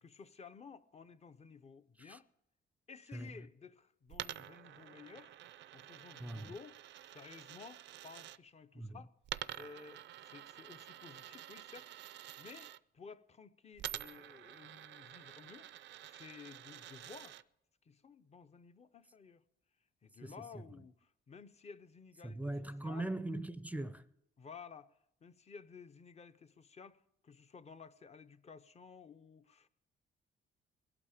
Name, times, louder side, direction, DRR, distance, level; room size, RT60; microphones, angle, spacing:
voice 1, 0.0-2.2 2.9-5.3 5.7-6.8 7.1-9.1 9.5-11.9 12.4-15.7 16.1-17.4 17.9-19.4 20.0-22.5 22.8-23.1 24.4-24.9 25.2-29.7, left 5 dB, 35° left, 0.7 m, -54 dB
Coin (dropping), 4.1-8.4 9.2-12.8 13.8-17.4, right 13 dB, 65° right, 0.4 m, -48 dB
voice 2, 6.2-6.5 8.8-9.0 20.2-20.3 22.2-24.0, right 2 dB, 5° right, 0.5 m, -40 dB
21.5 x 8.6 x 5.0 m
cardioid pair, 90°, 20 cm